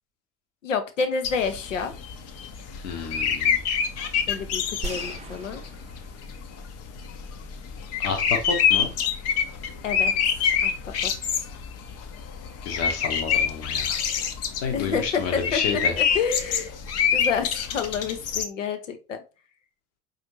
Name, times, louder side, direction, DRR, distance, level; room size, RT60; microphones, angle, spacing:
voice 1, 0.6-1.9 4.3-5.6 9.8-10.1 10.6-10.7 11.0-11.5 14.7-15.6 16.0-16.7 17.1-19.2, left 5 dB, 80° left, 8 dB, 0.7 m, -29 dB
sound 1, 1.2-18.4, left 7 dB, 45° left, 0.6 m, -27 dB
voice 2, 2.7-3.6 8.0-8.9 12.6-14.0 14.6-16.0, left 6 dB, 65° left, 4 dB, 1.0 m, -30 dB
sound 2, 4.8-6.8 7.1-7.2, right 4 dB, 20° right, 0.4 m, -39 dB
5.0 x 2.6 x 2.9 m, 0.31 s
figure-of-eight pair, 60°, 37 cm